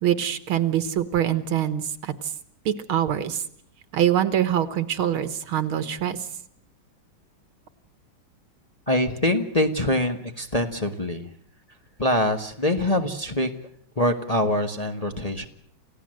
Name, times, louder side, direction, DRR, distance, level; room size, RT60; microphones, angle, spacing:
voice 1, 0.0-2.1 2.7-3.4 3.9-6.2, right 10 dB, 80° right, 12 dB, 2.2 m, -24 dB
voice 2, 8.9-11.3 12.0-13.5 14.0-15.5, left 1 dB, 20° left, 4 dB, 1.1 m, -24 dB
29.0 x 16.0 x 7.8 m, 0.64 s
omnidirectional pair, 2.3 m